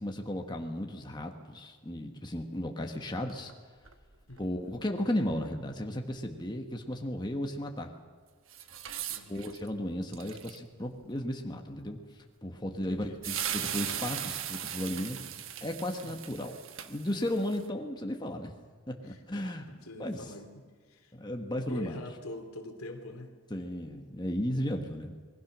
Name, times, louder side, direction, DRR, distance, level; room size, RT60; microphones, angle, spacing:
voice 1, 0.0-3.5 4.4-7.9 9.3-12.0 12.4-15.2 15.6-16.6 16.9-18.5 18.9-19.6 20.0-20.2 21.1-22.0 23.5-25.2, left 1 dB, 20° left, 3 dB, 1.5 m, -34 dB
sound 1, 3.3-3.5 3.8-3.9 4.3-4.8 8.5-9.7 10.1-10.6 11.0-11.1 13.0-13.1 13.2-17.6, right 10 dB, 65° right, 1.3 m, -38 dB
voice 2, 9.1-9.5 12.7-13.2 16.0-16.2 19.0-21.1 21.6-23.3, left 1 dB, 85° left, 5 dB, 2.9 m, -45 dB
27.0 x 21.0 x 6.3 m, 1.5 s
head